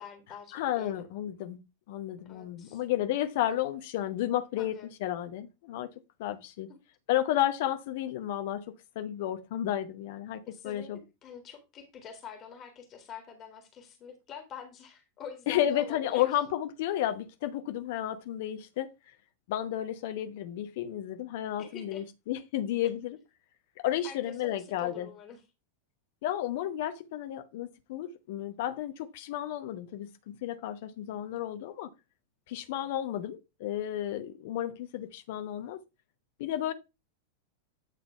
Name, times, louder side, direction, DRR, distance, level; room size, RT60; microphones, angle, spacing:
voice 1, 0.0-1.1 2.2-2.8 4.6-4.9 6.7-6.8 10.5-16.3 21.6-22.0 24.0-25.4, left 6 dB, 30° left, 1.9 m, -46 dB
voice 2, 0.5-1.6 1.9-5.9 6.2-6.7 7.1-11.0 15.5-18.9 19.5-23.2 23.8-25.1 26.2-31.9 32.5-35.8 36.4-36.7, left 12 dB, 50° left, 0.9 m, -32 dB
9.2 x 3.9 x 4.5 m
figure-of-eight pair, 90°, 0 cm